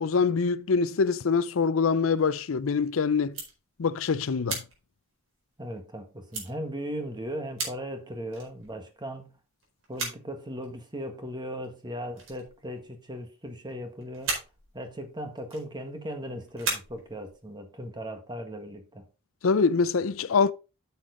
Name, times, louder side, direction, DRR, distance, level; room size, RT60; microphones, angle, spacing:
voice 1, 0.0-3.4 3.8-4.6 19.4-20.5, left 5 dB, 80° left, 0.5 m, -24 dB
sound 1, 1.9-2.8 3.2-4.0 4.5-5.9 6.3-6.5 7.2-7.3 7.6-7.9 8.3-9.0 9.6-10.3 10.6-11.0 11.6-11.8 12.1-13.2 13.5-13.7 14.0-16.2 16.5-17.5, right 3 dB, 70° right, 4.5 m, -37 dB
voice 2, 5.6-9.4 9.9-14.4 14.7-19.1, equal, 20° right, 1.6 m, -37 dB
8.9 x 7.0 x 3.8 m
head